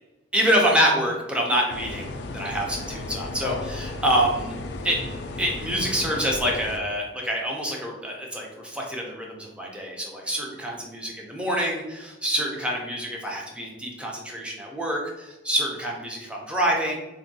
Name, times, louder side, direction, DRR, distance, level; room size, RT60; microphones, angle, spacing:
voice 1, 0.3-4.5 4.8-5.0 5.4-16.9, equal, 5° right, -1 dB, 0.5 m, -26 dB
sound 1, 1.7-6.8, left 2 dB, 65° left, 0.3 m, -34 dB
3.5 x 2.2 x 2.6 m, 1.1 s
head